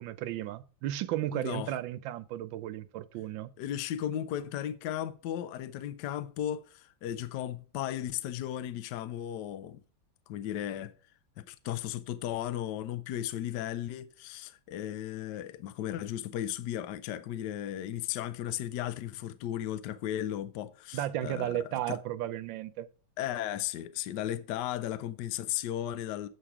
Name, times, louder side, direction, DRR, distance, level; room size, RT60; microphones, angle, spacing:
voice 1, 0.0-3.5 20.9-22.9, right 13 dB, 85° right, 1.4 m, -34 dB
voice 2, 1.3-1.7 3.6-9.8 10.3-10.9 11.4-21.5 21.9-22.0 23.2-26.3, left 11 dB, 70° left, 1.2 m, -35 dB
8.7 x 7.4 x 4.8 m
omnidirectional pair, 2.0 m